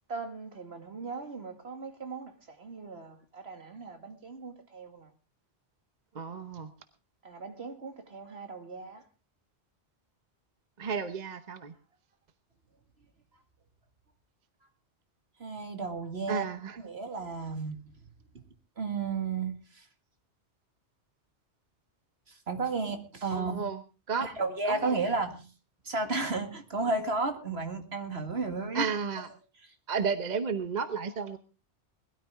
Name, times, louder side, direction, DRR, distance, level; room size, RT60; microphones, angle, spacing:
voice 1, 0.1-5.1 7.2-9.0 15.4-16.4 16.8-17.9 18.8-19.9 22.3-23.6 24.2-25.5 25.8-28.9 29.2-29.3, right 3 dB, 65° right, 2.3 m, -34 dB
voice 2, 6.1-6.7 10.8-11.7 16.3-16.8 23.3-23.8 24.1-24.3 24.7-25.0 28.7-29.3 29.9-31.4, right 5 dB, 40° right, 1.0 m, -32 dB
21.0 x 12.5 x 3.6 m
omnidirectional pair, 1.2 m